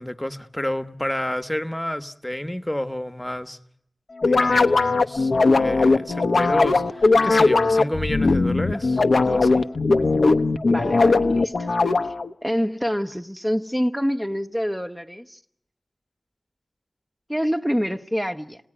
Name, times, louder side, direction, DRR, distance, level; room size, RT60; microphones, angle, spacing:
voice 1, 0.0-3.6 4.2-9.7, left 1 dB, 10° left, 1.4 m, -30 dB
sound 1, 4.2-12.3, left 3 dB, 80° left, 1.0 m, -19 dB
voice 2, 10.6-11.7 12.4-15.4 17.3-18.6, equal, 5° right, 1.1 m, -26 dB
28.0 x 18.0 x 10.0 m
wide cardioid pair, 60°, 0 cm